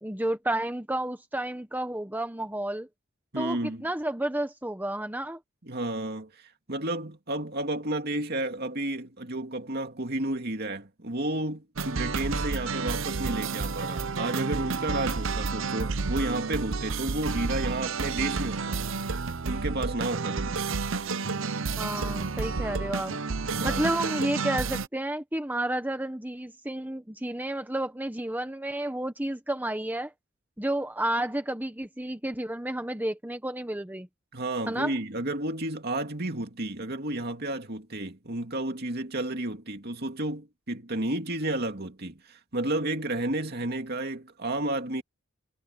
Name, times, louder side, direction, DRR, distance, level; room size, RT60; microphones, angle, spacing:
voice 1, 0.0-2.9 3.4-5.4 21.8-23.2 23.6-30.1 30.6-34.1 34.7-34.9, right 1 dB, 10° right, 1.2 m, -31 dB
voice 2, 3.3-3.9 5.6-18.8 19.4-20.7 23.4-24.0 34.3-45.0, right 1 dB, 50° right, 2.5 m, -32 dB
sound 1, 11.8-24.9, right 4 dB, 65° right, 0.8 m, -30 dB
head